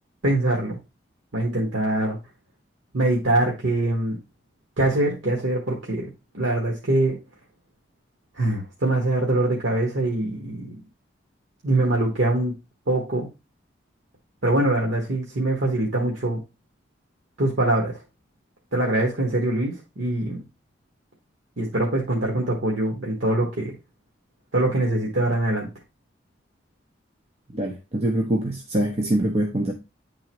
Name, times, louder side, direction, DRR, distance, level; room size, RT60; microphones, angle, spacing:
voice 1, 0.2-0.7 1.3-2.2 2.9-4.2 4.8-7.2 8.3-10.8 11.6-12.5 12.9-13.3 14.4-16.4 17.4-18.0 18.7-20.4 21.6-23.7 24.5-25.7, right 1 dB, 80° right, 1.3 m, -23 dB
voice 2, 27.5-29.7, right 1 dB, 35° right, 0.7 m, -24 dB
9.1 x 3.8 x 3.0 m
head